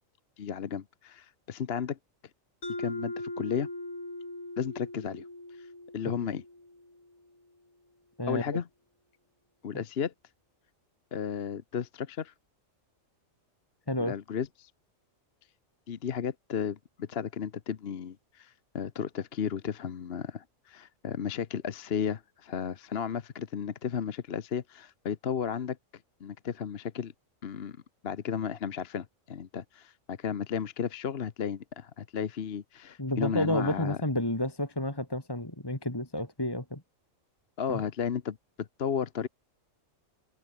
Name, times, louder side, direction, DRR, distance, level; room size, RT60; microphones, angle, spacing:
voice 1, 0.4-2.0 2.8-3.7 4.6-5.2 5.6-5.7 5.9-6.4 8.3-8.7 9.6-10.1 11.1-12.3 14.0-14.7 15.9-25.8 26.2-27.1 27.4-27.8 28.0-34.0 37.6-39.3, left 7 dB, 50° left, 1.1 m, -34 dB
Mallet percussion, 2.6-7.2, left 1 dB, 85° left, 8.0 m, -40 dB
voice 2, 8.2-8.6 13.9-14.1 33.0-36.8 37.7-37.8, left 1 dB, 15° left, 2.8 m, -30 dB
omnidirectional pair, 1.4 m